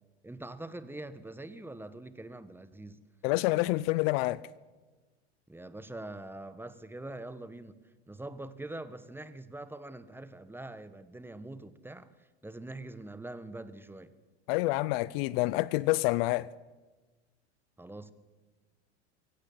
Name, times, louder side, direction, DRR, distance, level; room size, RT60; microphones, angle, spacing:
voice 1, 0.2-3.0 5.5-7.8 8.1-14.2 17.8-18.1, right 2 dB, 5° right, 1.3 m, -44 dB
voice 2, 3.2-4.4 14.5-16.5, left 19 dB, 60° left, 0.7 m, -27 dB
22.5 x 17.0 x 8.6 m
hypercardioid pair, 95°, 35 cm